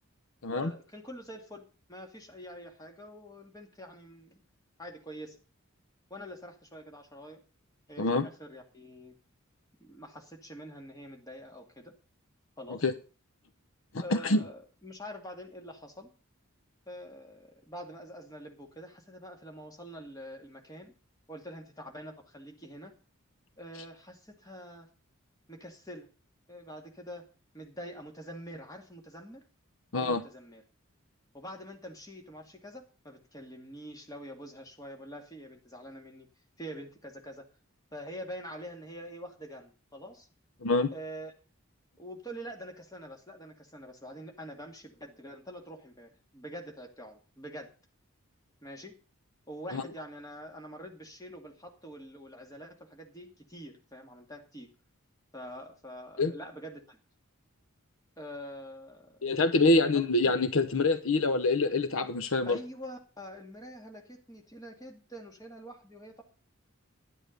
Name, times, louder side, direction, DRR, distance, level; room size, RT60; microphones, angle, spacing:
voice 1, 0.5-1.6 1.9-4.4 4.8-5.4 6.1-7.4 7.9-9.2 9.8-11.9 12.6-12.9 14.0-16.1 16.9-20.9 21.3-22.9 23.6-24.9 25.5-26.1 26.5-27.3 27.5-29.4 30.0-30.6 31.3-36.3 36.6-37.4 37.9-40.3 40.9-41.3 42.0-47.7 48.6-49.0 49.5-54.7 55.3-57.0 58.2-59.2 59.9-60.0 62.4-66.2, equal, 15° left, 2.3 m, -45 dB
voice 2, 13.9-14.4 29.9-30.2 40.6-40.9 49.7-49.8 56.2-56.3 59.2-62.6, left 2 dB, 70° left, 0.8 m, -26 dB
11.0 x 10.5 x 5.3 m
head